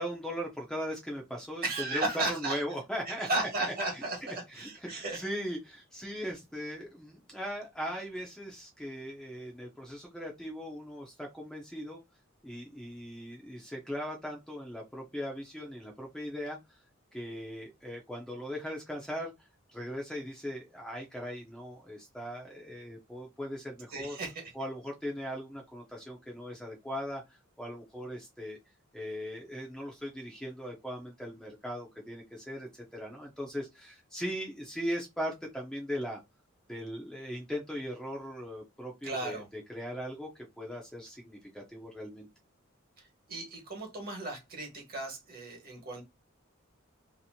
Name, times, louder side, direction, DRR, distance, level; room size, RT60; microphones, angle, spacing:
voice 1, 0.0-12.0 12.4-16.8 17.1-19.3 19.7-24.2 24.5-28.6 28.9-36.2 36.7-42.3, equal, 5° left, 0.5 m, -39 dB
voice 2, 1.6-2.6 3.1-5.2 23.9-24.4 39.0-39.5 43.0-46.0, right 2 dB, 45° right, 1.3 m, -35 dB
2.8 x 2.6 x 2.6 m
head